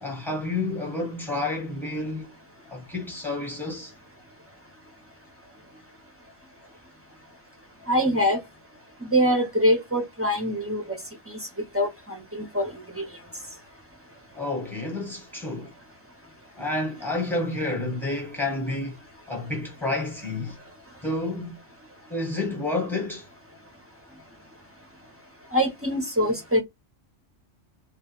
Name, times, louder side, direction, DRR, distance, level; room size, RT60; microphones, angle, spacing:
voice 1, 0.0-2.3 2.7-3.9 14.3-15.7 16.6-19.0 19.3-20.6 21.0-21.6 22.1-23.3, left 2 dB, ahead, 0.8 m, -30 dB
voice 2, 7.9-8.4 9.0-11.0 11.3-11.4 11.7-13.0 25.5-26.6, equal, 20° right, 0.4 m, -24 dB
2.2 x 2.2 x 2.9 m
omnidirectional pair, 1.3 m